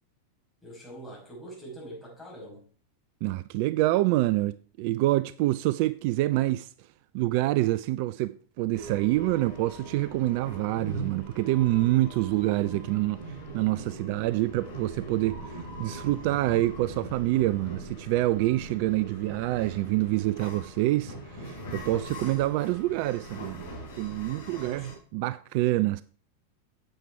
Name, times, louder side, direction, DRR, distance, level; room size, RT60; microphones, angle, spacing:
voice 1, 0.6-2.7 24.5-24.9, right 1 dB, 5° left, 5.8 m, -44 dB
voice 2, 3.2-6.9 7.1-23.7 24.0-26.0, right 17 dB, 45° right, 0.3 m, -27 dB
sound 1, 8.7-24.9, right 1 dB, 55° left, 5.1 m, -41 dB
9.8 x 7.5 x 4.5 m
figure-of-eight pair, 90°, 0 cm